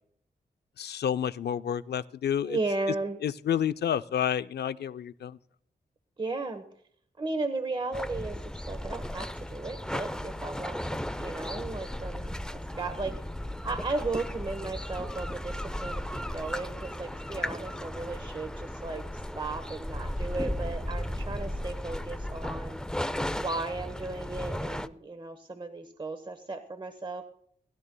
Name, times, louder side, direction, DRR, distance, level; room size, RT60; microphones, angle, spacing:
voice 1, 0.8-2.6 3.2-5.4, left 9 dB, 80° left, 13 dB, 0.5 m, -29 dB
voice 2, 2.4-3.2 6.2-6.6 7.2-8.4 8.7-13.1 13.6-15.5 15.8-22.8 23.3-27.3, right 3 dB, 30° right, 8 dB, 1.0 m, -35 dB
sound 1, 7.9-24.9, left 1 dB, 5° left, 0.5 m, -35 dB
19.5 x 12.0 x 2.2 m, 0.64 s
wide cardioid pair, 85°, 17 cm